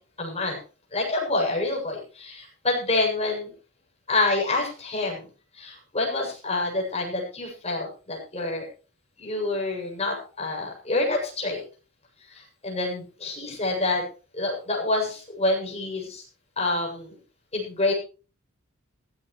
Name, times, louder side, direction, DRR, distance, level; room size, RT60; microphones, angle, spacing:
voice 1, 0.2-0.6 0.9-3.5 4.1-5.3 5.5-8.7 9.2-11.6 12.3-14.0 14.3-16.2 16.6-17.2 17.5-17.9, left 2 dB, 30° left, 0 dB, 7.6 m, -27 dB
16.5 x 15.5 x 3.2 m, 0.35 s
head